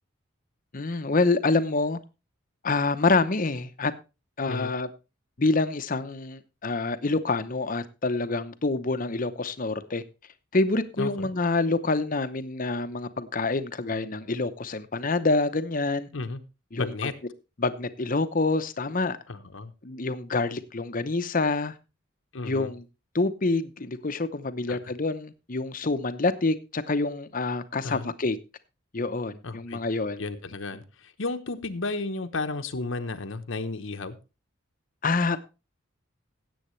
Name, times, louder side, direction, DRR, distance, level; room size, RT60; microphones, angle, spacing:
voice 1, 0.7-2.0 2.6-3.9 4.4-4.9 5.4-10.0 10.5-16.1 16.7-16.9 17.6-19.2 19.8-21.7 22.4-22.8 23.1-28.4 28.9-30.2 35.0-35.4, left 3 dB, 40° left, 0.8 m, -27 dB
voice 2, 11.0-11.3 16.1-16.4 16.8-17.1 19.3-19.7 22.3-22.7 24.7-24.8 27.8-28.1 29.4-29.8 30.2-34.2, left 3 dB, 65° left, 0.9 m, -33 dB
17.0 x 8.0 x 3.2 m
head